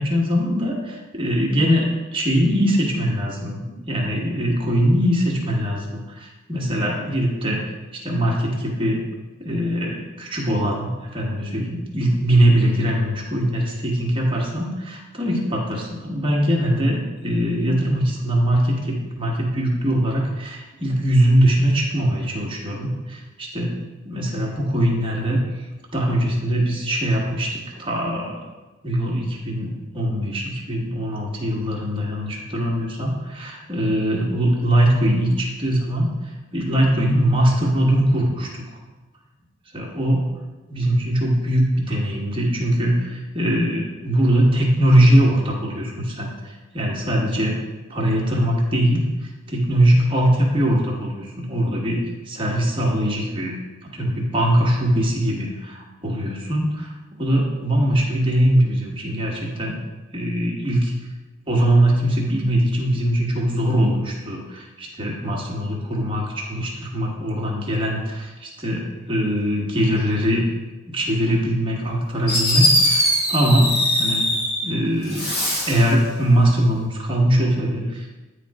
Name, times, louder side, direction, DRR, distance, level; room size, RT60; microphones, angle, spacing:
voice 1, 0.0-7.6 8.0-9.0 9.4-23.8 24.0-25.4 25.9-28.4 28.8-36.1 36.5-38.6 39.7-40.3 40.7-46.3 46.7-47.6 47.9-49.1 49.5-52.0 52.3-53.6 53.9-56.9 57.2-59.8 60.1-60.9 61.5-70.4 70.9-74.2 74.6-75.3 75.7-78.1, equal, 25° right, -2 dB, 1.3 m, -21 dB
Fireworks, 71.9-72.0 72.3-74.7 75.1-75.9, left 1 dB, 55° left, 1.7 m, -21 dB
9.1 x 3.2 x 4.7 m, 1.2 s
head